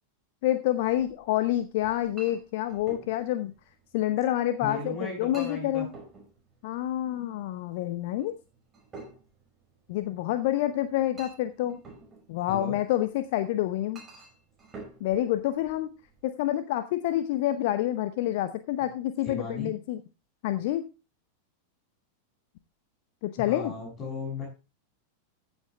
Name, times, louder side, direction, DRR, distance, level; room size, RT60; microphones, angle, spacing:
voice 1, 0.4-3.5 3.9-5.9 6.6-8.3 9.9-11.8 12.3-14.0 15.0-15.9 16.2-20.0 20.4-20.8 23.2-23.7, left 13 dB, 50° left, 11 dB, 0.9 m, -28 dB
Chink clink, 0.7-16.2, right 3 dB, 20° right, 5.6 m, -51 dB
voice 2, 4.6-5.9 12.5-12.8 19.2-19.7 23.4-24.4, left 3 dB, 25° left, -3 dB, 6.6 m, -36 dB
15.0 x 8.2 x 3.4 m, 0.30 s
figure-of-eight pair, 90°, 0 cm